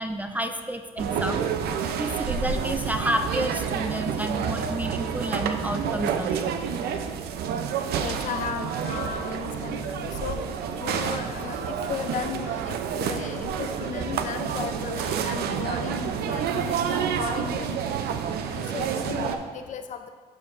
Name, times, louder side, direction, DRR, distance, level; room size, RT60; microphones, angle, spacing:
voice 1, 0.0-1.4 2.0-6.5, right 1 dB, 10° right, 6 dB, 0.3 m, -30 dB
sound 1, 1.0-19.4, right 7 dB, 70° right, 0.5 m, -29 dB
voice 2, 7.9-17.9 18.4-20.1, left 7 dB, 50° left, 8 dB, 0.5 m, -35 dB
12.0 x 4.8 x 2.5 m, 1.5 s
cardioid pair, 110°, 17 cm